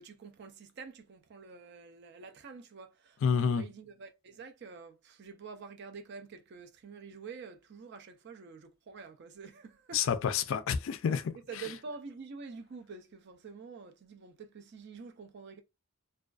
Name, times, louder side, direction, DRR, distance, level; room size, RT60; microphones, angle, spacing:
voice 1, 0.0-10.0 11.5-15.6, right 5 dB, 50° right, 0.4 m, -47 dB
voice 2, 3.2-3.7 9.9-11.7, left 7 dB, 60° left, 0.3 m, -29 dB
2.3 x 2.3 x 2.3 m
head